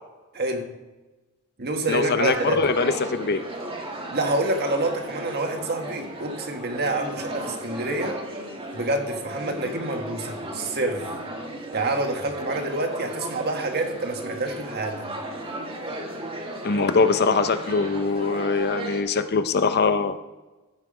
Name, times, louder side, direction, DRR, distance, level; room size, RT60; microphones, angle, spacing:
voice 1, 0.3-0.7 1.6-2.6 4.1-8.2 8.7-11.1 11.7-15.1, right 2 dB, 45° right, 4 dB, 1.5 m, -27 dB
voice 2, 1.9-3.4 16.6-20.2, left 4 dB, 45° left, 11 dB, 0.6 m, -22 dB
sound 1, 2.2-19.0, right 1 dB, 25° right, 1.8 m, -35 dB
14.5 x 5.9 x 4.9 m, 1.1 s
head